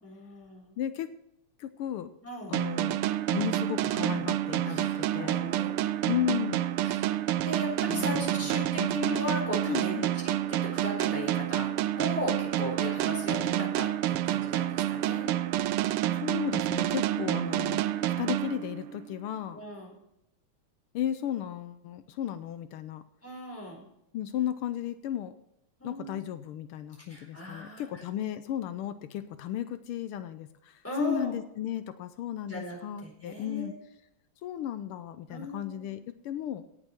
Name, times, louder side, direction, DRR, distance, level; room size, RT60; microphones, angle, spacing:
voice 1, 0.0-0.7 2.2-2.6 4.7-6.1 6.8-7.1 7.4-15.3 17.1-18.0 19.5-19.9 23.2-23.8 25.8-26.2 27.1-28.0 30.8-31.4 32.5-33.8 35.3-36.0, left 1 dB, 5° left, -2 dB, 4.2 m, -38 dB
voice 2, 0.8-1.1 1.6-2.1 2.5-3.0 3.3-5.4 6.1-6.6 7.9-8.2 8.7-9.0 9.7-10.1 16.1-19.6 20.9-23.0 24.1-25.4 25.8-33.8 34.4-36.6, left 11 dB, 85° left, 11 dB, 1.6 m, -34 dB
sound 1, 2.5-19.1, right 13 dB, 80° right, 1.5 m, -29 dB
17.5 x 7.1 x 4.4 m, 0.82 s
omnidirectional pair, 2.4 m